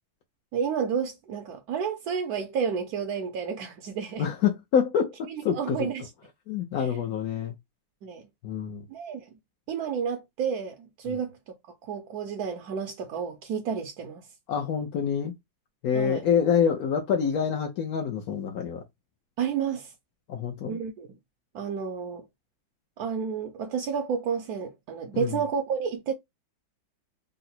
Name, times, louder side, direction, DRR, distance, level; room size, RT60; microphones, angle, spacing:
voice 1, 0.5-4.3 5.3-6.1 6.8-6.9 8.0-8.2 8.9-9.3 9.7-11.6 11.8-14.3 15.9-16.3 19.4-19.9 20.7-21.1 21.5-22.3 23.0-26.1, right 6 dB, 70° right, 0.9 m, -31 dB
voice 2, 4.2-5.9 6.5-7.5 8.4-8.8 11.1-11.2 14.5-15.3 15.8-18.8 20.3-20.8 25.1-25.4, left 7 dB, 70° left, 0.9 m, -26 dB
3.8 x 2.0 x 4.2 m
omnidirectional pair, 2.2 m